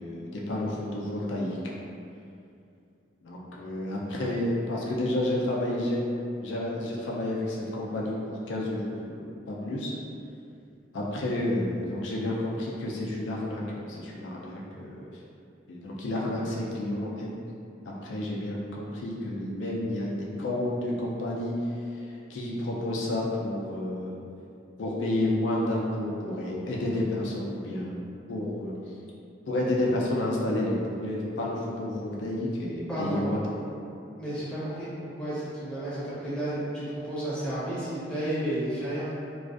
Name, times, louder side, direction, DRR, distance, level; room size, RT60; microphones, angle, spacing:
voice 1, 0.0-1.8 3.2-6.0 6.4-9.9 10.9-15.0 15.7-17.3 17.9-21.5 22.3-24.1 24.8-28.0 28.3-28.7 29.5-33.4, left 1 dB, 80° left, -4 dB, 0.4 m, -30 dB
voice 2, 32.9-33.6 34.2-39.1, right 1 dB, 5° left, -12 dB, 0.7 m, -32 dB
2.4 x 2.3 x 2.4 m, 2.5 s
head